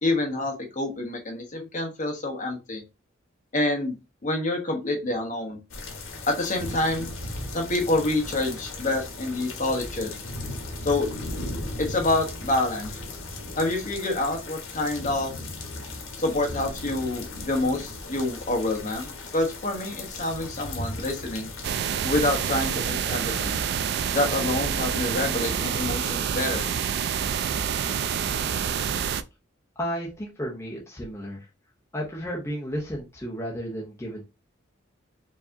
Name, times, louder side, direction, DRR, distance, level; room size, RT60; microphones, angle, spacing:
voice 1, 0.0-2.8 3.5-4.0 4.2-5.6 6.3-7.1 7.5-10.2 10.8-11.1 11.8-12.9 13.6-15.3 16.2-21.5 22.0-23.6 24.1-26.7, left 2 dB, 40° left, 2 dB, 1.0 m, -27 dB
sound 1, 5.7-21.7, left 2 dB, 80° left, 1.1 m, -37 dB
sound 2, 21.6-29.2, right 7 dB, 55° right, 0.3 m, -27 dB
voice 2, 29.8-31.5 31.9-34.2, equal, 15° left, -3 dB, 0.7 m, -33 dB
4.6 x 2.8 x 2.6 m, 0.26 s
head